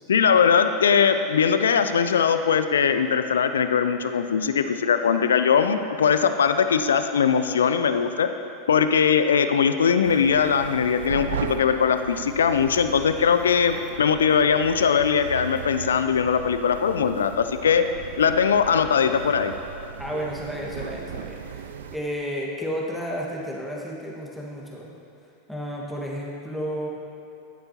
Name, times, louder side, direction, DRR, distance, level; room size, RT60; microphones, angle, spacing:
voice 1, 0.1-8.3 8.7-17.8 18.2-19.5, left 7 dB, 80° left, 9 dB, 0.4 m, -21 dB
sound 1, 10.0-22.0, right 7 dB, 75° right, 0.4 m, -37 dB
voice 2, 20.0-24.9 25.5-26.9, equal, ahead, -4 dB, 1.6 m, -32 dB
12.0 x 8.6 x 2.9 m, 2.9 s
hypercardioid pair, 90°, 0 cm